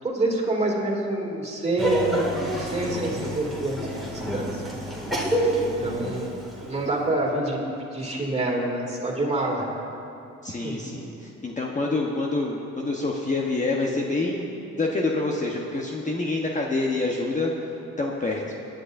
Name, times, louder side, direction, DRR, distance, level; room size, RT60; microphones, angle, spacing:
voice 1, 0.0-2.3 2.6-4.6 5.8-6.4 6.7-7.6 7.9-9.7 10.5-11.0, right 2 dB, 20° right, -2 dB, 2.6 m, -27 dB
Laughter, 1.8-6.9, right 1 dB, ahead, 2.3 m, -28 dB
voice 2, 10.4-14.5 14.8-17.5 18.0-18.4, left 2 dB, 25° left, -1 dB, 1.1 m, -27 dB
22.0 x 10.5 x 2.7 m, 2.6 s
cardioid pair, 90°, 30 cm